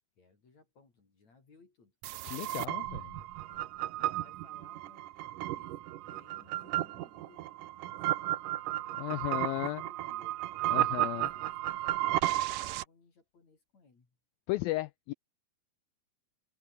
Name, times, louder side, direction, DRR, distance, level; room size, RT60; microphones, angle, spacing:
voice 1, 0.0-2.0 3.0-3.1 3.4-3.7 4.0-8.5 8.9-10.4 11.0-14.2, left 4 dB, 40° left, 5.8 m, -62 dB
sound 1, 2.0-12.8, right 15 dB, 75° right, 2.0 m, -33 dB
voice 2, 2.3-3.0 9.0-9.8 10.7-11.3 14.5-15.1, left 19 dB, 90° left, 2.1 m, -34 dB
omnidirectional pair, 4.7 m